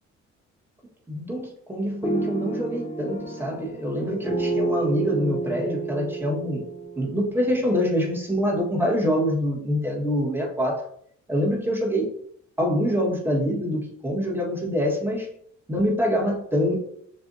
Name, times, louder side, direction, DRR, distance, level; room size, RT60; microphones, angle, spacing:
voice 1, 1.1-6.6 7.0-10.8 11.3-12.1 12.6-15.3 15.7-16.7, equal, 5° right, -2 dB, 1.5 m, -25 dB
sound 1, 2.0-8.1, right 3 dB, 20° left, 0.8 m, -31 dB
6.8 x 2.7 x 2.7 m, 0.66 s
cardioid pair, 90°, 30 cm